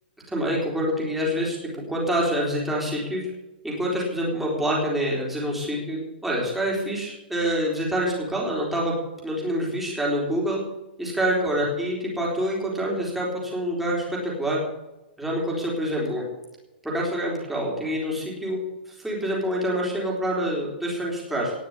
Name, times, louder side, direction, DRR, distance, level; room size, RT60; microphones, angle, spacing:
voice 1, 0.3-1.6 1.9-3.2 3.6-8.9 9.2-10.6 11.0-14.6 15.2-16.2 16.8-18.6 18.9-21.5, equal, ahead, -4 dB, 3.9 m, -26 dB
19.0 x 6.5 x 10.0 m, 1.0 s
hypercardioid pair, 175°, 6 cm